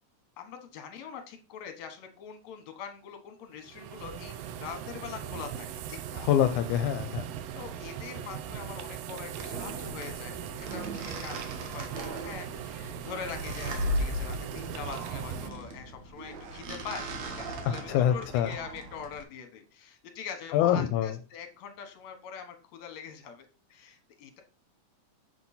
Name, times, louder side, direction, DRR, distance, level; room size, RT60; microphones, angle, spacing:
voice 1, 0.4-6.3 7.5-24.4, left 7 dB, 65° left, 6 dB, 2.5 m, -43 dB
sound 1, 3.6-15.5, right 10 dB, 80° right, 1.5 m, -39 dB
voice 2, 6.2-7.3 17.7-18.5 20.5-21.2, left 10 dB, 85° left, 8 dB, 2.1 m, -25 dB
sound 2, 9.3-19.2, equal, 65° right, 2.6 m, -37 dB
7.7 x 6.2 x 4.3 m, 0.35 s
omnidirectional pair, 3.5 m